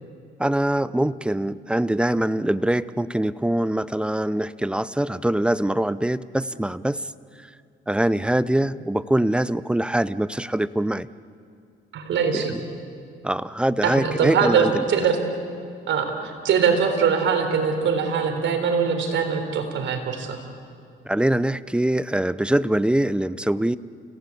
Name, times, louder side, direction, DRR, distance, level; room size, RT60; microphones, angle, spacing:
voice 1, 0.4-7.0 7.9-11.1 12.3-12.6 13.2-14.8 21.0-23.8, right 1 dB, 5° right, 17 dB, 0.6 m, -23 dB
voice 2, 11.9-12.5 13.8-15.2 15.9-20.4, right 6 dB, 70° right, 4 dB, 3.9 m, -22 dB
29.5 x 17.0 x 8.5 m, 2.3 s
cardioid pair, 90°, 20 cm